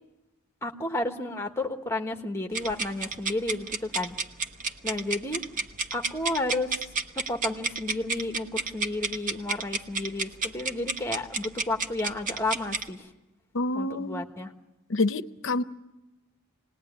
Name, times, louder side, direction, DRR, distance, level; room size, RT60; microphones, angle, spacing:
voice 1, 0.6-4.1 4.8-5.4 5.9-6.9 7.1-13.1 13.7-14.5, left 2 dB, 10° left, 1.4 m, -32 dB
sound 1, 2.5-12.9, right 4 dB, 35° right, 1.0 m, -32 dB
voice 2, 13.5-14.2 14.9-15.6, left 2 dB, 60° left, 0.8 m, -27 dB
27.0 x 20.0 x 9.4 m
head